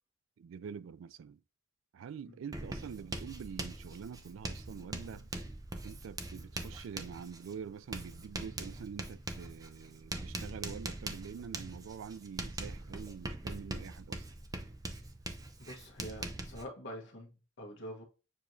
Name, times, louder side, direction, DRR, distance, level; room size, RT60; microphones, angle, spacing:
voice 1, 0.4-1.4 1.9-5.3 5.8-14.3, right 7 dB, 75° right, 0.3 m, -46 dB
Writing, 2.5-16.6, right 2 dB, 20° right, 0.5 m, -42 dB
voice 2, 15.6-17.3 17.6-18.0, equal, 60° left, 1.2 m, -45 dB
6.8 x 3.0 x 2.6 m
head